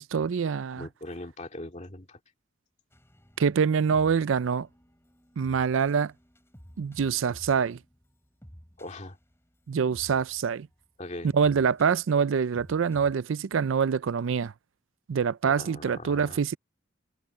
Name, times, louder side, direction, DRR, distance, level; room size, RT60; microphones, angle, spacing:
voice 1, 0.0-0.9 3.4-4.7 5.4-6.1 6.8-7.8 9.7-10.7 11.3-14.5 15.1-16.6, right 6 dB, 75° right, 0.4 m, -25 dB
voice 2, 0.8-2.2 8.8-9.2 11.0-11.3 15.4-16.4, left 2 dB, 35° left, 2.4 m, -40 dB
sound 1, 2.9-13.2, equal, 10° left, 6.6 m, -53 dB
head